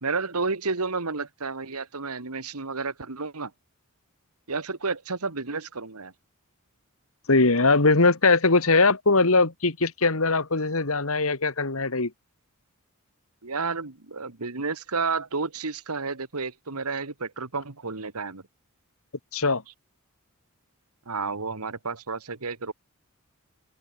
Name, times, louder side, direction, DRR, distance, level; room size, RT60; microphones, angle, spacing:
voice 1, 0.0-3.5 4.5-6.1 13.4-18.4 21.1-22.7, right 4 dB, 80° right, 1.8 m, -31 dB
voice 2, 7.3-12.1 19.3-19.6, left 3 dB, 70° left, 2.0 m, -21 dB
open air
head